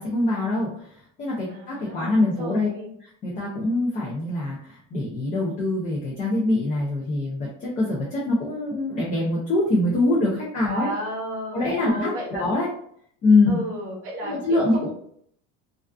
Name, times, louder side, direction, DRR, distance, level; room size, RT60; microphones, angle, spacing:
voice 1, 0.0-2.7 3.2-10.9 11.5-12.7 13.2-13.6 14.2-14.9, left 2 dB, 25° left, -4 dB, 0.3 m, -24 dB
voice 2, 1.5-2.9 10.6-12.5 13.5-14.9, equal, 40° right, -2 dB, 0.8 m, -33 dB
2.3 x 2.3 x 2.2 m, 0.65 s
cardioid pair, 170°, 33 cm